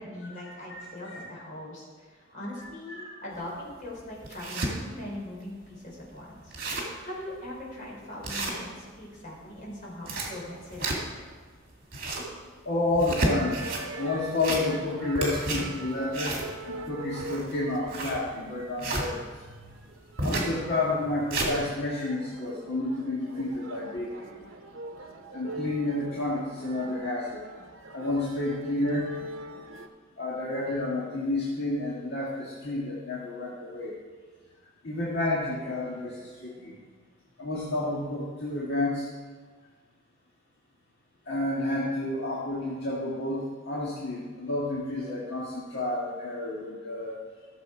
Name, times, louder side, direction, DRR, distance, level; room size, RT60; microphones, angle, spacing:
voice 1, 0.0-11.0, left 1 dB, 40° left, -4 dB, 3.7 m, -41 dB
voice 2, 0.7-1.2 2.9-3.1 12.7-13.6 13.9-16.4 16.6-19.4 20.2-24.4 25.3-27.4 27.9-29.1 30.2-33.9 34.8-36.8 37.4-39.1 41.3-47.1, left 2 dB, 60° left, -6 dB, 1.7 m, -30 dB
sound 1, 3.4-3.5 4.0-4.7 5.3-5.4 5.7-5.8 6.1-6.2 6.4-7.0 7.4-7.6 8.2-9.0 9.8-11.3 11.7-12.3 12.9-13.8 14.3-14.9 15.2-19.1 20.2-20.5 21.0-21.5, right 2 dB, 50° right, 2.3 m, -31 dB
sound 2, 13.2-29.9, right 1 dB, 75° right, 0.8 m, -42 dB
14.0 x 6.8 x 4.8 m, 1.5 s
head